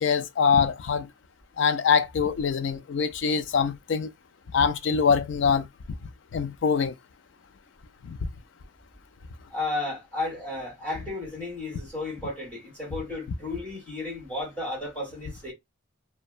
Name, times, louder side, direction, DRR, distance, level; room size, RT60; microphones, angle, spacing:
voice 1, 0.0-1.1 1.6-4.1 4.5-5.7 6.3-6.9 8.0-8.2, left 6 dB, 60° left, 0.4 m, -24 dB
voice 2, 9.5-15.5, left 2 dB, 10° left, 1.5 m, -33 dB
2.7 x 2.1 x 2.3 m
head